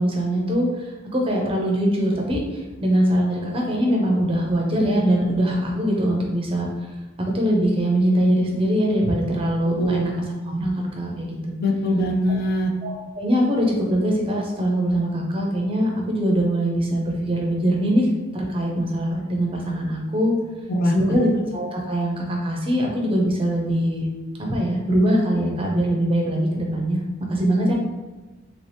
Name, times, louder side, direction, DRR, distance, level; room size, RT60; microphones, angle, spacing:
voice 1, 0.0-6.7 7.3-10.1 10.4-11.4 12.8-18.1 18.3-20.3 20.9-24.1 24.5-27.0 27.3-27.7, equal, 25° right, -1 dB, 0.6 m, -22 dB
voice 2, 9.6-10.0 11.6-12.7 20.7-20.9, left 1 dB, 45° left, 1 dB, 0.4 m, -22 dB
3.0 x 2.8 x 3.3 m, 1.2 s
head